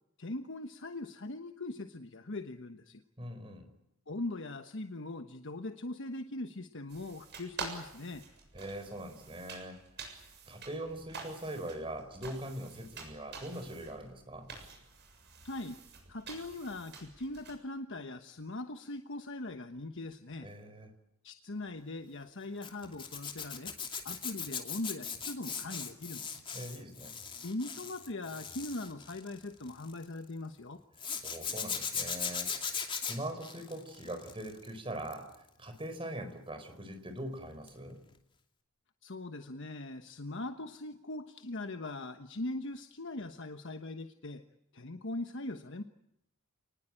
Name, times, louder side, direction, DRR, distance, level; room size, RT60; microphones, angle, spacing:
voice 1, 0.2-3.0 4.1-8.2 15.4-15.8 16.1-20.5 21.2-23.7 24.0-26.4 27.4-30.8 39.0-44.4 44.7-45.8, left 2 dB, 60° left, 7 dB, 1.2 m, -41 dB
voice 2, 3.2-3.7 8.5-9.8 10.5-14.5 20.4-20.9 26.5-27.1 31.2-32.5 33.0-35.3 35.6-38.0, right 1 dB, 25° right, 7 dB, 4.7 m, -42 dB
sound 1, 6.9-17.6, right 4 dB, 55° right, 7.2 m, -48 dB
Zipper (clothing), 22.6-30.0 31.0-34.7 35.0-35.4 37.7-37.8 38.1-38.2, left 6 dB, 25° left, 2.8 m, -39 dB
29.0 x 20.0 x 9.1 m, 0.83 s
head